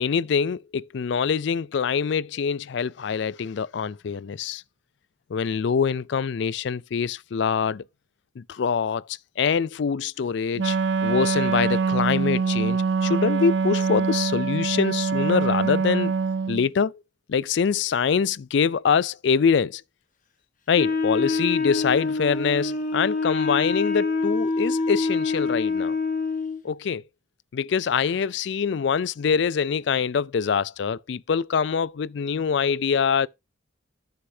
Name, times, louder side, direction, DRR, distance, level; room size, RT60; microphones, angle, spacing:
voice 1, 0.0-4.6 5.3-7.8 8.4-10.8 11.0-16.1 16.5-16.9 17.3-19.8 20.7-26.0 26.6-27.0 27.5-33.3, left 6 dB, 60° left, 0.4 m, -24 dB
Wind instrument woodwind instrument, 10.6-16.7, right 5 dB, 60° right, 0.4 m, -24 dB
Wind instrument woodwind instrument 2, 20.7-26.6, left 3 dB, 40° left, 1.5 m, -25 dB
11.0 x 6.5 x 2.7 m
head